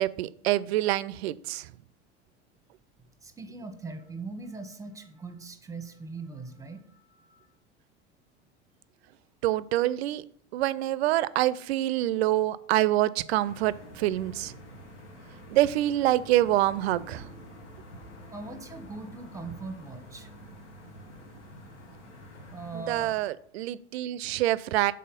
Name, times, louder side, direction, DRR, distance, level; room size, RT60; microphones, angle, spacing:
voice 1, 0.0-1.7 9.4-10.2 10.5-14.5 15.5-17.3 22.7-24.9, right 15 dB, 65° right, 18 dB, 0.4 m, -26 dB
voice 2, 3.2-7.5 18.3-20.3 21.9-22.0 22.5-23.2, right 3 dB, 10° right, 8 dB, 0.9 m, -41 dB
sound 1, 13.4-23.1, equal, 80° left, 1.3 m, -48 dB
5.6 x 3.8 x 5.1 m, 0.64 s
figure-of-eight pair, 80°, 35 cm